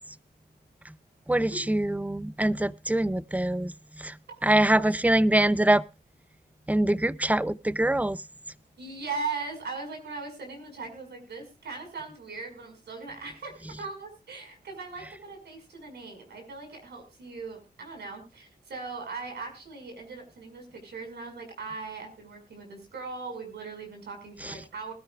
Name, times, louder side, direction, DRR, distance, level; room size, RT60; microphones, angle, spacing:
voice 1, 1.3-3.7 4.0-4.1 4.4-5.8 6.7-8.2 24.4-24.5, right 1 dB, 10° right, 0.7 m, -24 dB
voice 2, 8.8-24.9, right 4 dB, 85° right, 5.7 m, -39 dB
20.5 x 12.5 x 2.4 m
cardioid pair, 55°, 17 cm